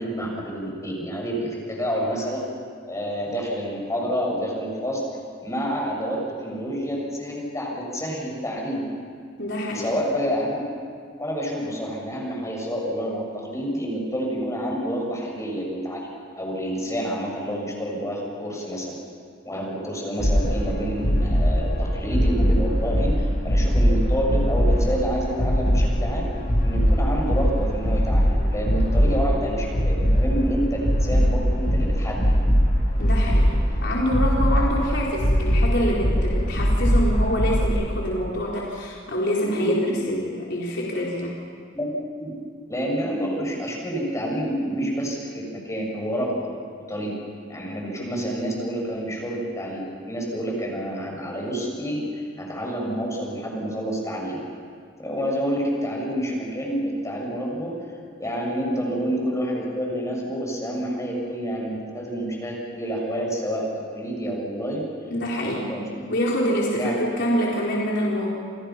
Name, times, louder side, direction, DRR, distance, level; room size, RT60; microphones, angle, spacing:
voice 1, 0.0-2.4 2.9-5.0 5.4-8.8 9.7-10.6 11.2-18.9 19.4-26.2 26.6-32.2 39.4-39.9 41.7-41.9 42.2-42.4 42.7-46.4 46.9-47.2 47.5-54.4 55.0-57.7 58.2-64.8 65.4-66.0 66.7-66.9, equal, 15° left, -1 dB, 7.0 m, -28 dB
voice 2, 9.4-9.9 29.0-29.1 33.0-33.5 33.8-39.8 40.1-41.4 65.1-65.8 66.1-68.3, equal, 65° left, -4 dB, 4.1 m, -26 dB
sound 1, 20.2-37.6, equal, 45° left, 6.0 m, -21 dB
29.5 x 29.5 x 5.9 m, 2.2 s
head